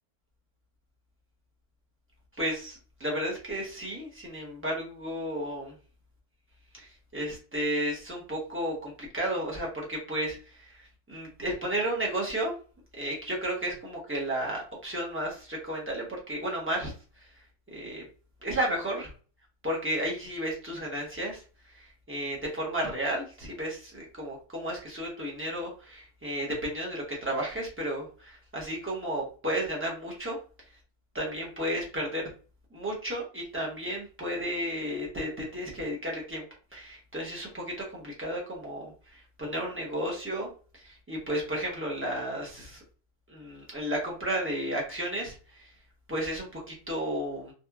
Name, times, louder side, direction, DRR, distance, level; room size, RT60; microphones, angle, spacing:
voice 1, 2.4-5.7 6.8-12.5 12.9-16.9 17.2-17.3 17.7-18.0 18.4-19.1 19.6-21.4 21.7-30.4 31.1-32.2 32.7-36.4 36.7-42.8 43.3-45.7 46.1-47.5, right 1 dB, 15° right, -3 dB, 0.5 m, -33 dB
2.9 x 2.3 x 2.3 m, 0.37 s
omnidirectional pair, 1.6 m